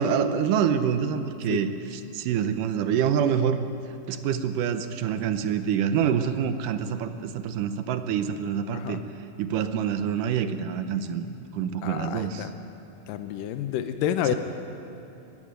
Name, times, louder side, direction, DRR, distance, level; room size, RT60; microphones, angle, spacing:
voice 1, 0.0-3.6 4.1-9.0 9.4-11.3 11.5-12.5, right 8 dB, 75° right, 9 dB, 2.2 m, -26 dB
voice 2, 11.8-12.5 13.1-14.4, left 11 dB, 80° left, 8 dB, 2.3 m, -29 dB
22.5 x 14.0 x 9.1 m, 2.7 s
omnidirectional pair, 4.0 m